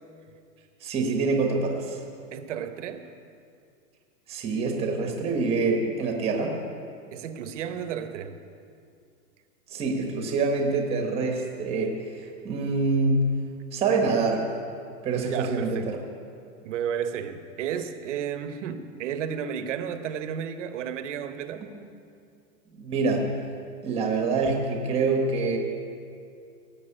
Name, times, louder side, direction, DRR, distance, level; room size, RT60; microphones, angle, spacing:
voice 1, 0.8-2.0 4.3-6.6 9.7-13.3 13.7-14.6 15.0-16.0 21.6-21.7 22.7-23.3 23.8-25.6, right 3 dB, 10° right, 2 dB, 1.1 m, -26 dB
voice 2, 2.3-3.1 7.1-8.4 15.2-16.0 16.6-21.7, right 8 dB, 50° right, 9 dB, 1.0 m, -32 dB
17.5 x 7.6 x 8.7 m, 2.4 s
supercardioid pair, 170°, 48 cm